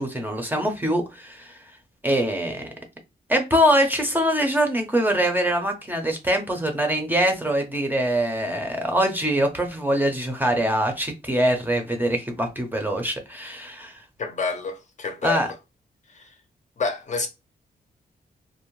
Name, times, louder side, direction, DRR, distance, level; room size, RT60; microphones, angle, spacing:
voice 1, 0.0-1.6 2.0-2.7 3.3-14.0 15.2-15.5, equal, 10° right, 0.6 m, -23 dB
voice 2, 14.2-15.5 16.1-16.3 16.8-17.3, left 4 dB, 45° left, 0.6 m, -28 dB
2.6 x 2.0 x 3.0 m
cardioid pair, 100°, 17 cm